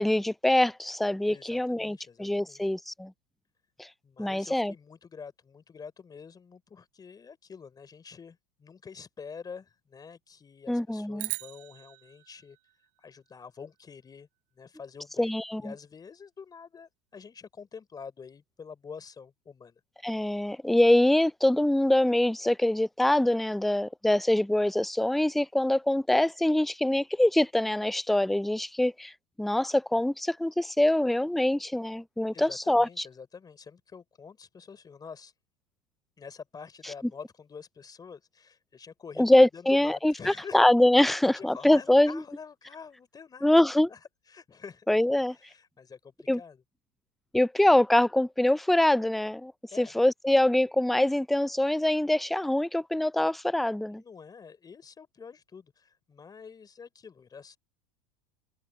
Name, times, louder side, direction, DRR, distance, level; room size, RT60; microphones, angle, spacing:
voice 1, 0.0-3.1 3.8-3.9 4.2-4.7 10.7-11.3 15.2-15.7 20.0-29.1 29.4-33.0 39.2-42.2 43.4-43.9 44.9-45.4 46.3-46.4 47.3-49.5 49.8-54.0, left 1 dB, ahead, 0.3 m, -24 dB
voice 2, 1.3-2.7 4.0-12.6 13.0-14.3 14.6-15.3 15.6-19.8 32.3-35.3 36.2-40.7 41.0-44.0 44.3-44.9 45.3-46.6 49.7-49.9 53.9-57.6, left 6 dB, 20° left, 3.6 m, -47 dB
sound 1, 11.2-13.6, right 27 dB, 65° right, 0.5 m, -40 dB
supercardioid pair, 110°, 17 cm